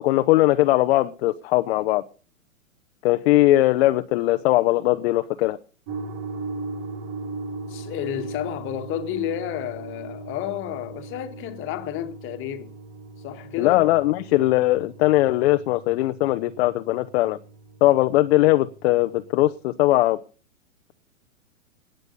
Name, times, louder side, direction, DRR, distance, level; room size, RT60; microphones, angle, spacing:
voice 1, 0.0-2.0 3.0-5.6 13.6-17.4 17.8-20.2, left 16 dB, 45° left, 0.8 m, -20 dB
sound 1, 5.9-19.5, right 3 dB, 45° right, 2.9 m, -38 dB
voice 2, 7.7-12.7 13.2-13.9, left 11 dB, 30° left, 1.7 m, -31 dB
19.0 x 9.2 x 5.4 m
hypercardioid pair, 125°, 42 cm